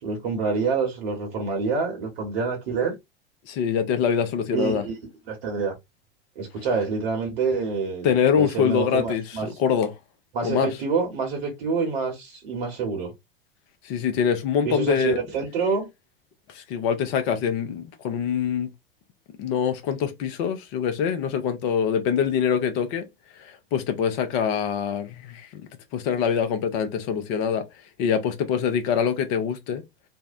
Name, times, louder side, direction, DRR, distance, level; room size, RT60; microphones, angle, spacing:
voice 1, 0.0-2.9 4.5-4.9 5.3-5.8 6.4-9.5 10.3-13.1 14.6-15.9, right 5 dB, 55° right, 1.0 m, -27 dB
voice 2, 3.5-4.8 8.0-9.2 9.6-9.9 10.4-10.7 13.8-15.2 16.5-18.7 19.4-23.0 23.4-25.6 25.9-27.6 28.0-29.8, left 7 dB, 45° left, 0.7 m, -24 dB
2.6 x 2.1 x 2.4 m
figure-of-eight pair, 85°, 29 cm